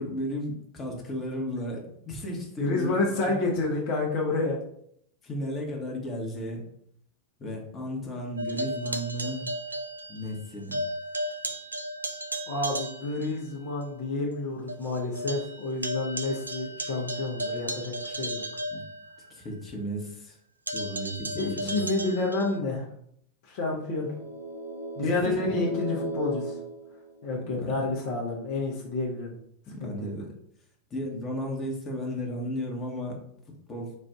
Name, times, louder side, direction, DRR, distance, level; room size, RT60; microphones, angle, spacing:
voice 1, 0.0-3.4 5.2-6.7 7.4-9.5 10.1-10.8 18.7-18.8 19.3-20.4 20.7-21.8 25.0-25.7 27.5-27.7 29.7-30.3 30.9-33.2 33.7-33.9, equal, 20° left, -1 dB, 1.1 m, -34 dB
voice 2, 2.6-4.6 12.5-18.4 21.4-22.9 23.4-24.1 25.0-26.6 27.2-29.3 29.8-30.1, left 3 dB, 45° left, -2 dB, 0.9 m, -29 dB
sound 1, 8.4-10.4 10.7-13.3 13.8-13.9 14.3-14.4 14.7-19.5 20.7-22.6, right 1 dB, 80° right, 0.4 m, -35 dB
sound 2, 23.8-27.7, right 2 dB, 80° left, 1.1 m, -36 dB
4.2 x 2.5 x 3.5 m, 0.69 s
figure-of-eight pair, 90°, 0 cm